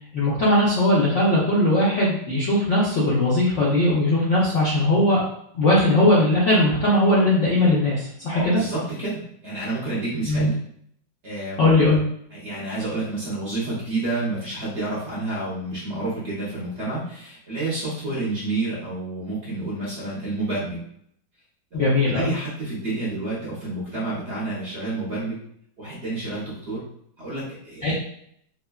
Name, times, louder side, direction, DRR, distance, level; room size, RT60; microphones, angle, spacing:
voice 1, 0.1-5.2 5.5-8.6 10.3-10.5 11.6-12.0 21.7-22.3 27.8-27.9, left 1 dB, 65° left, -7 dB, 0.7 m, -19 dB
voice 2, 8.3-10.5 11.2-11.8 12.3-20.8 21.7-25.4 25.8-26.8 27.2-27.9, right 2 dB, 50° right, -7 dB, 0.9 m, -29 dB
3.3 x 2.2 x 2.2 m, 0.69 s
omnidirectional pair, 1.9 m